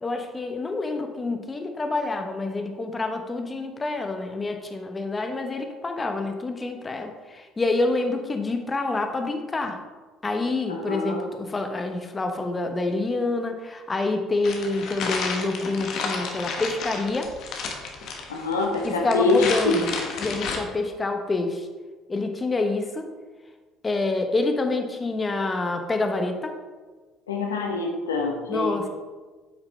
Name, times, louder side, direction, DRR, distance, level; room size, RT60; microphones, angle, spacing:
voice 1, 0.0-9.8 10.2-17.3 18.8-19.9 20.2-21.7 22.1-23.1 23.8-26.6 28.5-28.9, left 3 dB, 25° left, 5 dB, 0.9 m, -27 dB
voice 2, 10.7-11.2 18.3-19.8 27.3-28.9, left 3 dB, 90° left, 2 dB, 0.9 m, -25 dB
sound 1, 14.4-20.6, left 4 dB, 60° left, 1.2 m, -32 dB
8.6 x 5.9 x 3.3 m, 1.3 s
hypercardioid pair, 60°, 0 cm